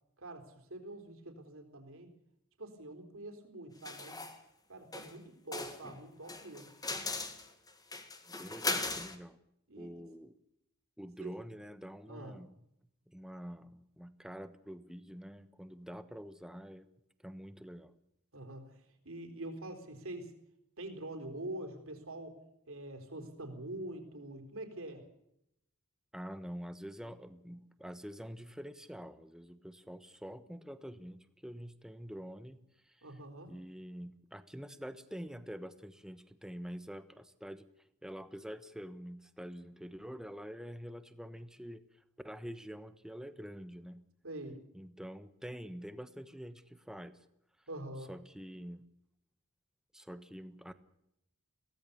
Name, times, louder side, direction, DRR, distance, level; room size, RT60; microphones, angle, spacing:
voice 1, 0.2-2.1 2.6-4.2 4.7-6.7 9.7-9.9 11.2-11.4 12.1-12.3 18.3-20.3 20.8-25.1 33.0-33.5 44.2-44.6 47.7-48.1, right 1 dB, 65° right, 6 dB, 4.1 m, -45 dB
Kitchen Sounds - Clattering and Soup in the microwave, 3.9-4.4 4.9-5.1 5.5-9.2, left 3 dB, 20° left, 1.9 m, -38 dB
voice 2, 8.4-9.4 9.8-10.3 11.0-12.5 13.1-16.9 17.2-18.0 26.1-32.6 32.9-33.0 33.5-37.7 38.0-41.8 42.2-44.0 44.7-47.2 48.1-48.8 49.9-50.7, equal, 5° right, 11 dB, 1.2 m, -46 dB
23.0 x 17.5 x 6.9 m, 0.79 s
head